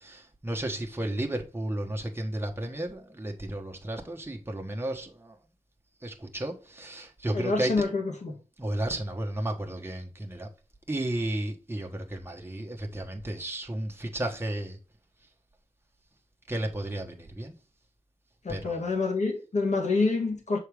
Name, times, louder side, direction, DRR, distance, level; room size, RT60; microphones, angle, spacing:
voice 1, 0.0-5.4 6.0-7.7 8.6-10.5 10.9-14.8 16.5-17.5 18.5-18.9, right 1 dB, 15° right, 1.2 m, -33 dB
voice 2, 7.3-8.4 18.4-20.6, left 3 dB, 60° left, 1.9 m, -27 dB
6.6 x 4.6 x 3.3 m
wide cardioid pair, 85°, 13 cm